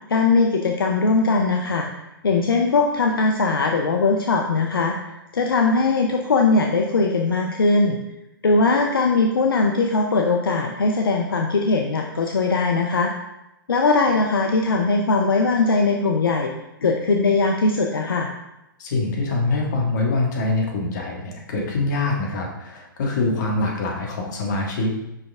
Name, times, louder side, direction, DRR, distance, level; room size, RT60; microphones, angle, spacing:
voice 1, 0.0-1.9 2.2-8.0 8.4-13.1 13.7-16.5 16.8-18.3, left 3 dB, 85° left, 2 dB, 0.6 m, -20 dB
voice 2, 18.8-24.9, left 2 dB, 55° left, -1 dB, 1.6 m, -24 dB
5.7 x 5.2 x 3.4 m, 0.90 s
hypercardioid pair, 125°, 12 cm